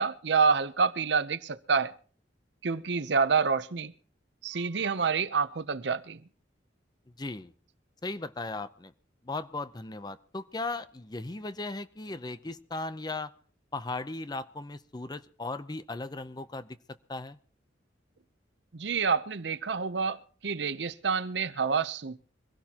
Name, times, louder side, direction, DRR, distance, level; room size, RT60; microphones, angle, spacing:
voice 1, 0.0-1.9 2.6-3.9 4.4-6.2 18.7-22.2, right 5 dB, 70° right, 0.7 m, -28 dB
voice 2, 7.2-7.5 8.0-8.9 9.2-13.3 13.7-16.8 17.1-17.4, left 2 dB, 20° left, 0.6 m, -37 dB
24.0 x 16.5 x 2.9 m
head